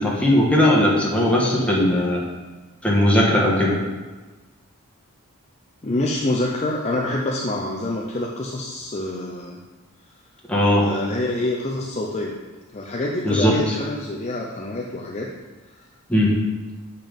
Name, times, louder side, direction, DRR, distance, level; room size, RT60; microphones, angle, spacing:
voice 1, 0.0-2.2 2.8-3.8 10.5-10.8 13.2-13.7 16.1-16.3, left 1 dB, 5° left, -4 dB, 1.6 m, -18 dB
voice 2, 5.8-9.6 10.8-12.3 12.7-15.3 15.8-15.9, left 1 dB, 30° left, -2 dB, 0.6 m, -26 dB
7.2 x 5.7 x 5.3 m, 1.2 s
head